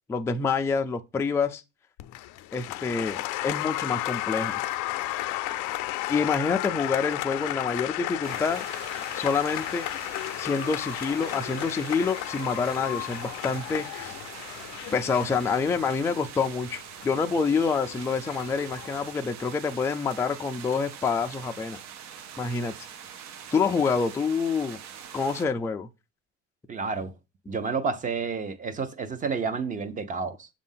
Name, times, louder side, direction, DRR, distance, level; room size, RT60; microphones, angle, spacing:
voice 1, 0.1-1.6 2.5-4.6 6.1-8.6 9.1-9.9 10.4-14.1 14.9-21.8 22.4-22.7 23.5-24.8 25.1-25.9, left 5 dB, 10° left, 0.3 m, -27 dB
Applause, 2.0-19.1, left 16 dB, 80° left, 0.5 m, -34 dB
sound 1, 8.2-25.5, right 8 dB, 60° right, 0.7 m, -43 dB
voice 2, 26.7-27.1 27.5-30.5, right 5 dB, 25° right, 0.7 m, -30 dB
7.3 x 2.6 x 5.5 m
cardioid pair, 135°, 30 cm